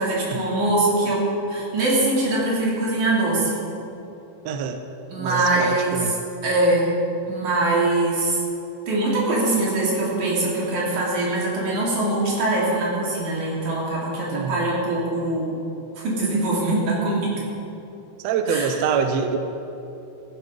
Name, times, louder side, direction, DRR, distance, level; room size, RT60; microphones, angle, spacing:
voice 1, 0.0-3.6 5.1-6.1 6.4-6.9 7.3-8.4 8.9-15.6 16.0-17.3 18.5-18.7, right 2 dB, 55° right, -4 dB, 4.1 m, -22 dB
voice 2, 4.4-4.8 5.2-6.1 14.3-14.7 18.2-19.4, right 6 dB, 85° right, 7 dB, 1.5 m, -25 dB
14.5 x 11.0 x 5.3 m, 2.9 s
omnidirectional pair, 4.1 m